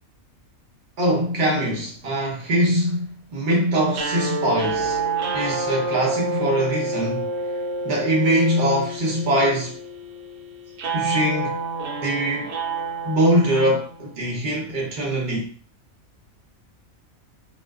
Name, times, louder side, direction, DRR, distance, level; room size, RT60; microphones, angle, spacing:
voice 1, 1.0-5.0 5.3-7.3 7.8-9.8 10.9-11.6 12.0-12.5 13.0-15.5, right 1 dB, 45° right, 0.7 m, -22 dB
sound 1, 3.9-14.1, right 3 dB, 85° right, 1.1 m, -28 dB
2.5 x 2.2 x 2.2 m
omnidirectional pair, 1.5 m